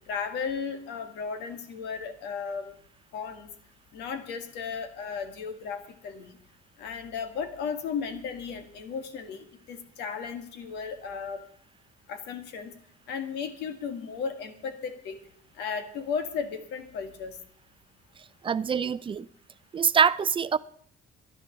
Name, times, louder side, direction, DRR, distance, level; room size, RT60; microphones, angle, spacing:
voice 1, 0.1-2.8 3.1-3.5 3.9-6.3 6.8-11.4 12.1-12.7 13.1-15.2 15.6-17.4, left 6 dB, 85° left, 2.1 m, -35 dB
voice 2, 18.4-19.3 19.7-20.6, right 6 dB, 30° right, 0.5 m, -24 dB
11.5 x 11.0 x 7.2 m
cardioid pair, 110°, 17 cm